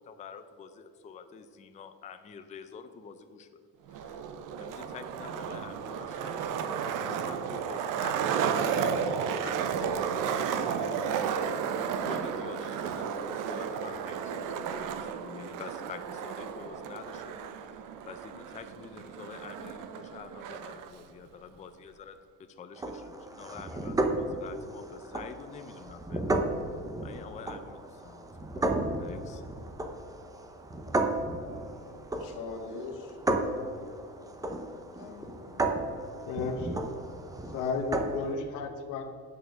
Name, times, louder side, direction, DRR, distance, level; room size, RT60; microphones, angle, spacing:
voice 1, 0.0-3.6 3.9-4.3 4.6-11.5 12.0-17.7 18.1-26.3 27.0-29.4, left 6 dB, 25° left, 8 dB, 0.4 m, -47 dB
Skateboard, 3.9-20.9, right 7 dB, 80° right, 0.8 m, -33 dB
sound 1, 22.8-38.3, right 2 dB, 10° right, 0.7 m, -34 dB
voice 2, 31.5-33.2 35.0-36.0, left 4 dB, 90° left, 2 dB, 1.8 m, -44 dB
voice 3, 36.2-36.7 37.5-39.0, left 4 dB, 70° left, 4 dB, 1.0 m, -33 dB
8.8 x 6.8 x 6.5 m, 2.2 s
cardioid pair, 175°, 31 cm